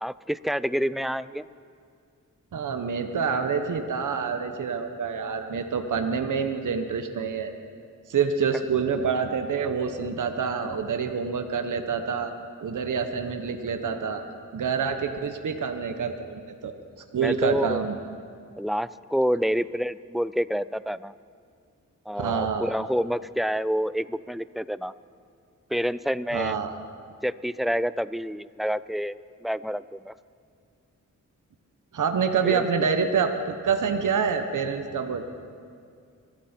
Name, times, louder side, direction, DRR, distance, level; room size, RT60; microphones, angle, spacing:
voice 1, 0.0-1.5 17.1-17.8 18.6-21.1 22.1-24.9 25.7-26.6 27.2-30.1 32.4-32.7, equal, ahead, 16 dB, 0.3 m, -28 dB
voice 2, 2.5-7.5 8.1-12.3 12.6-14.2 14.5-16.7 17.1-18.0 22.2-22.7 26.3-26.7 31.9-35.2, right 6 dB, 70° right, 6 dB, 1.1 m, -27 dB
25.0 x 13.0 x 4.4 m, 2.2 s
cardioid pair, 70°, 32 cm